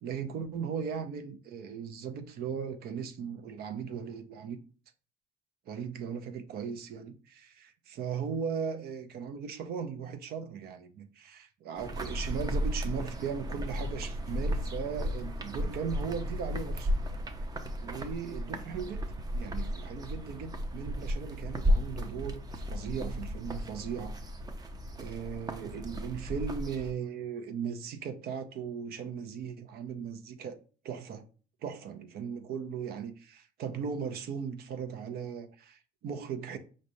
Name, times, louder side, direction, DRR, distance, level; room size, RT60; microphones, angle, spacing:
voice 1, 0.0-4.6 5.7-16.9 17.8-19.0 19.3-24.1 25.0-30.6 30.8-31.3 31.6-36.6, right 6 dB, 65° right, 0.7 m, -38 dB
sound 1, 11.8-26.9, equal, 20° right, 0.6 m, -34 dB
5.1 x 3.2 x 2.7 m
cardioid pair, 110°, 17 cm